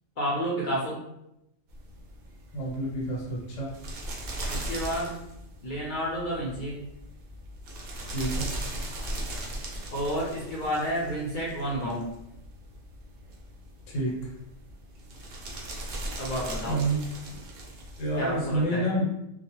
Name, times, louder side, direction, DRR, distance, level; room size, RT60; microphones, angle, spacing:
voice 1, 0.2-1.0 4.5-5.2 5.6-6.8 9.9-12.1 16.2-16.9 18.2-18.9, equal, 50° left, -4 dB, 0.7 m, -30 dB
sound 1, 1.7-18.7, right 1 dB, 60° right, 0.6 m, -39 dB
voice 2, 2.5-3.8 8.1-8.7 13.9-14.3 16.7-17.0 18.0-19.2, right 1 dB, 80° left, -3 dB, 1.0 m, -29 dB
2.3 x 2.0 x 2.9 m, 0.84 s
omnidirectional pair, 1.3 m